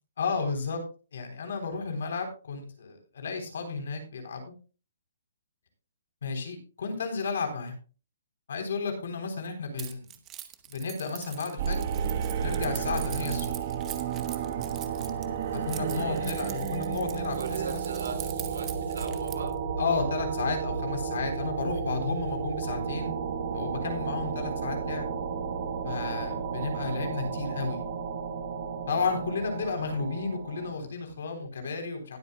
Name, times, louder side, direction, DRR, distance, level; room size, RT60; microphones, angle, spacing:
voice 1, 0.2-0.8 1.1-4.5 6.2-7.7 8.5-10.0 10.7-11.8 12.4-13.5 15.7-17.8 19.8-23.2 23.5-25.1 25.8-27.8 28.9-32.2, left 4 dB, 55° left, 5 dB, 3.8 m, -32 dB
Keys jangling, 9.8-19.5, right 13 dB, 15° right, 0.8 m, -43 dB
sound 1, 11.6-30.7, right 7 dB, 30° right, 1.3 m, -32 dB
voice 2, 15.9-16.3 17.4-19.6, right 6 dB, 85° right, 6 dB, 3.2 m, -38 dB
20.0 x 8.1 x 2.3 m, 0.34 s
hypercardioid pair, 175°, 0 cm